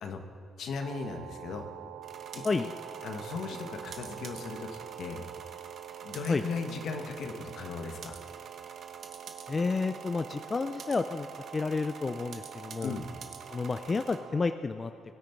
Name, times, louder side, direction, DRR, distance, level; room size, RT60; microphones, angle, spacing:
voice 1, 0.6-1.7 2.3-2.7 3.0-5.2 6.0-8.2 12.8-13.1, left 4 dB, 70° left, 5 dB, 1.3 m, -37 dB
sound 1, 0.8-14.6, right 11 dB, 90° right, 0.3 m, -46 dB
sound 2, 2.0-14.2, right 5 dB, 60° right, 1.2 m, -49 dB
voice 2, 9.5-12.9 13.5-14.9, left 4 dB, 30° left, 10 dB, 0.4 m, -30 dB
21.5 x 9.2 x 4.5 m, 2.6 s
cardioid pair, 90°, 0 cm